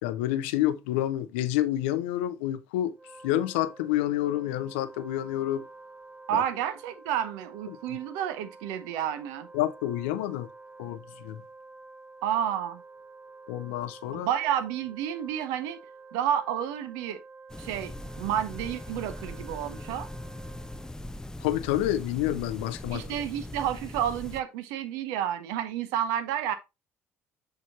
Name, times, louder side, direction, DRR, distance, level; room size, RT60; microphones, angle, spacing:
voice 1, 0.0-2.9 3.2-5.6 6.3-6.4 7.7-7.8 9.5-10.5 10.8-11.4 13.5-14.3 21.4-23.2, left 13 dB, 65° left, 0.5 m, -28 dB
Wind instrument woodwind instrument, 2.9-21.0, right 3 dB, 20° right, 1.5 m, -50 dB
voice 2, 6.3-9.5 12.2-12.8 14.1-15.8 16.1-17.2 17.6-20.1 22.9-26.5, right 10 dB, 65° right, 0.8 m, -30 dB
sound 1, 17.5-24.4, left 1 dB, 10° left, 0.4 m, -40 dB
6.6 x 6.0 x 2.5 m
figure-of-eight pair, 55°, 7 cm